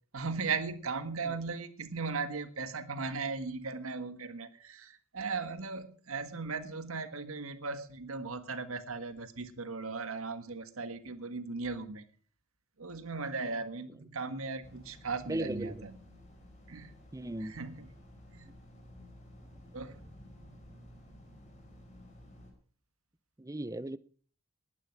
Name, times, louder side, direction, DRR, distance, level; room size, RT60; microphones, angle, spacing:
voice 1, 0.1-12.1 12.8-15.9 16.7-16.9 17.4-17.9 18.3-18.5 19.7-20.0, right 4 dB, 80° right, 10 dB, 1.6 m, -37 dB
sound 1, 14.6-22.5, left 1 dB, 35° left, 4.9 m, -54 dB
voice 2, 15.3-15.9 17.1-17.5 23.4-24.0, right 1 dB, 15° right, 17 dB, 0.6 m, -37 dB
19.5 x 11.5 x 4.6 m, 0.43 s
head